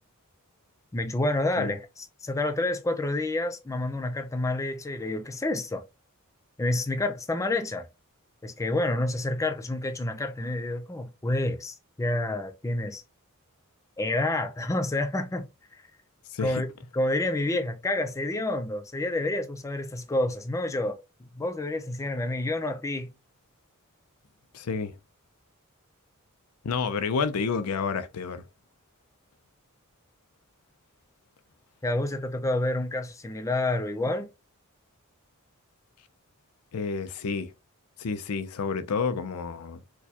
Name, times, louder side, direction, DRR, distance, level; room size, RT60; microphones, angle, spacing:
voice 1, 0.9-5.8 6.6-7.9 8.4-13.0 14.0-15.5 16.4-16.7 16.9-21.0 21.4-23.1 31.8-34.3, left 2 dB, 15° left, 0.4 m, -28 dB
voice 2, 16.3-16.6 24.5-24.9 26.6-28.4 36.7-37.5 38.0-39.8, left 5 dB, 75° left, 0.5 m, -30 dB
4.4 x 2.2 x 2.8 m
head